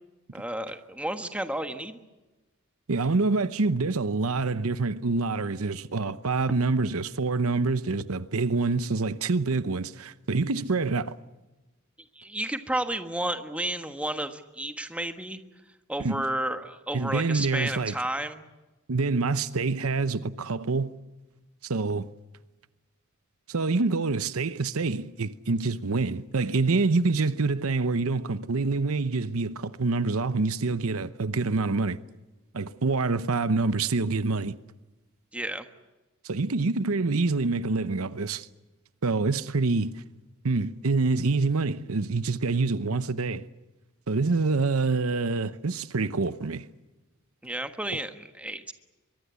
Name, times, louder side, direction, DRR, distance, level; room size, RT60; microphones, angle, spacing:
voice 1, 0.3-2.0 12.1-15.4 15.9-18.4 35.3-35.7 47.4-48.7, right 1 dB, 5° right, 1.4 m, -32 dB
voice 2, 2.9-11.2 16.0-16.2 16.9-18.0 18.9-20.9 21.6-22.1 23.5-32.0 32.5-34.5 36.2-38.5 39.0-40.0 40.4-43.5 44.1-46.7, right 3 dB, 75° right, 0.8 m, -26 dB
23.5 x 23.0 x 8.3 m
head